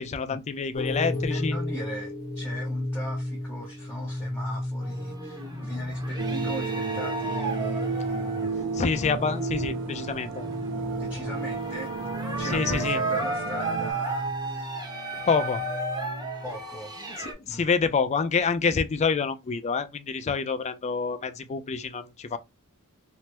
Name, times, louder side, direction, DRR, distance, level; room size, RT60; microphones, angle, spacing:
voice 1, 0.0-1.6 8.7-10.4 12.4-13.0 15.3-15.6 17.5-22.4, left 5 dB, 30° left, 0.3 m, -27 dB
sound 1, 0.7-16.6, left 1 dB, 45° left, 1.1 m, -35 dB
voice 2, 1.1-8.7 11.0-12.1 12.4-14.3 16.4-16.9 17.4-17.6, equal, 10° left, 0.7 m, -39 dB
sound 2, 4.8-17.3, right 2 dB, 20° right, 0.8 m, -34 dB
sound 3, 6.2-13.9, right 5 dB, 55° right, 0.4 m, -32 dB
3.3 x 2.0 x 2.8 m
head